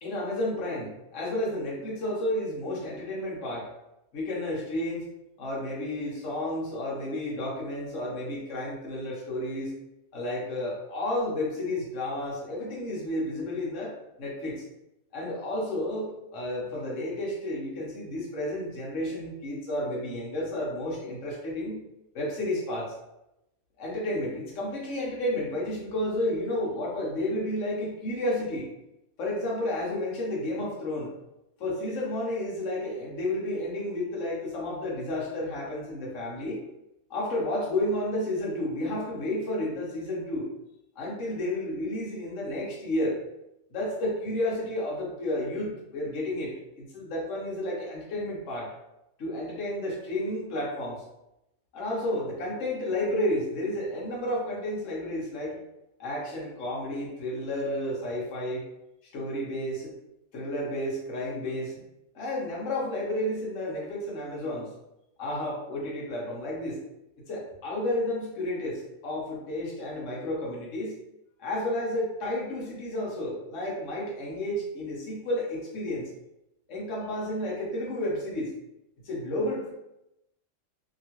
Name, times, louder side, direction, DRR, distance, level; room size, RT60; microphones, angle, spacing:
voice 1, 0.0-3.7 4.1-5.0 5.4-9.7 10.1-14.6 15.1-21.8 22.1-22.9 23.8-28.7 29.2-31.1 31.6-36.6 37.1-40.5 41.0-43.2 43.7-48.7 49.2-51.0 51.7-55.6 56.0-58.6 59.1-59.9 60.3-61.8 62.1-64.7 65.2-66.8 67.3-71.0 71.4-76.0 76.7-78.5 79.0-79.7, left 1 dB, 55° left, -4 dB, 1.2 m, -31 dB
2.9 x 2.9 x 2.9 m, 0.88 s
omnidirectional pair, 1.8 m